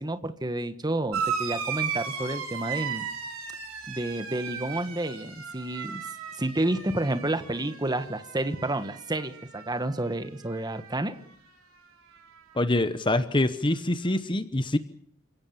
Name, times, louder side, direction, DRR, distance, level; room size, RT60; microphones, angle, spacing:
voice 1, 0.0-3.1 3.9-6.0 6.4-11.1, right 1 dB, 20° right, 10 dB, 1.4 m, -30 dB
sound 1, 1.1-10.1 10.4-11.2 12.3-12.4, right 7 dB, 65° right, 4.5 m, -36 dB
voice 2, 12.5-14.8, left 2 dB, 20° left, 11 dB, 0.9 m, -25 dB
29.0 x 17.5 x 7.1 m, 0.69 s
head